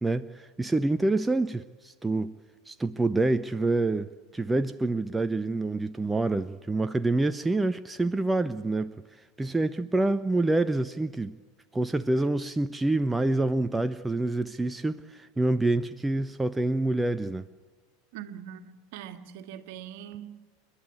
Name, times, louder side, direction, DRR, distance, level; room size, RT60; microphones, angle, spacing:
voice 1, 0.0-2.4 2.7-4.1 4.3-8.9 9.4-11.4 11.7-17.5, right 2 dB, 10° right, 0.6 m, -27 dB
voice 2, 18.1-20.4, right 10 dB, 55° right, 1.8 m, -42 dB
30.0 x 11.5 x 8.5 m
figure-of-eight pair, 85°, 0 cm